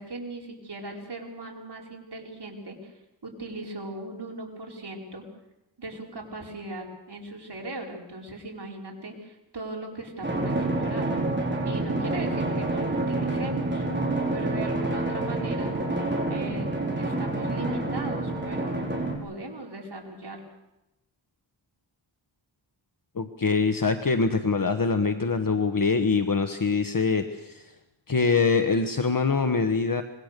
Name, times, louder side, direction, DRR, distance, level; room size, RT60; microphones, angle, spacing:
voice 1, 0.0-2.9 3.2-5.3 5.8-11.1 11.6-13.8 14.3-15.8 16.3-18.9 19.2-20.4, right 2 dB, 60° right, 0 dB, 5.0 m, -38 dB
Drum, 10.2-19.2, right 2 dB, 25° right, 5.3 m, -28 dB
voice 2, 23.2-27.7 28.1-30.0, left 4 dB, 45° left, 8 dB, 1.3 m, -24 dB
25.5 x 21.0 x 6.7 m, 0.93 s
wide cardioid pair, 85°, 46 cm